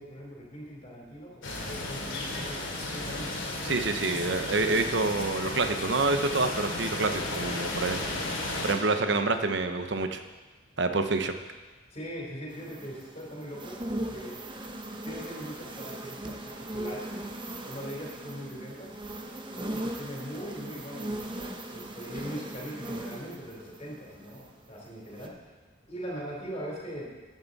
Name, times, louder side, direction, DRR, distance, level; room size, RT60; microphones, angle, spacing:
voice 1, 0.0-3.4 11.9-14.3 15.0-17.2 17.7-18.9 19.5-25.3 25.9-27.1, equal, 35° left, -3 dB, 3.5 m, -41 dB
sound 1, 1.4-8.7, left 2 dB, 90° left, 2.4 m, -34 dB
voice 2, 3.6-8.0 8.6-10.2 10.8-11.3, right 3 dB, 65° right, 8 dB, 0.9 m, -27 dB
sound 2, 12.5-24.7 25.1-25.3, right 1 dB, 25° right, 0.9 m, -39 dB
14.5 x 9.3 x 4.1 m, 1.2 s
head